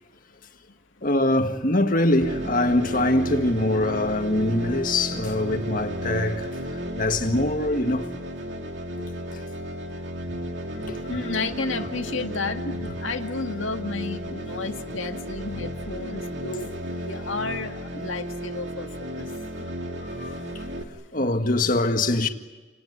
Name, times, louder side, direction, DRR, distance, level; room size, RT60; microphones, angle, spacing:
voice 1, 1.0-6.5 7.0-8.1 9.3-9.4 10.7-11.3 20.0-20.4 21.1-22.3, left 1 dB, 45° left, 1.8 m, -23 dB
sound 1, 2.2-20.8, equal, 65° right, 2.6 m, -33 dB
voice 2, 11.1-16.7 17.0-19.2, left 3 dB, 80° left, 2.0 m, -32 dB
29.5 x 19.5 x 9.8 m
head